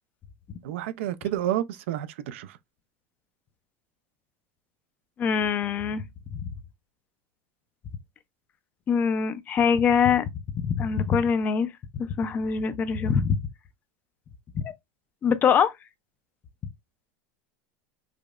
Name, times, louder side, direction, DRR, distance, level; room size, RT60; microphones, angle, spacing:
voice 1, 0.6-2.6, right 12 dB, 80° right, 0.4 m, -30 dB
voice 2, 5.2-6.0 6.3-6.4 8.9-10.3 10.6-11.7 11.9-13.4 14.5-14.7 15.2-15.7, left 6 dB, 25° left, 0.4 m, -23 dB
4.9 x 2.0 x 2.3 m
supercardioid pair, 150°, 7 cm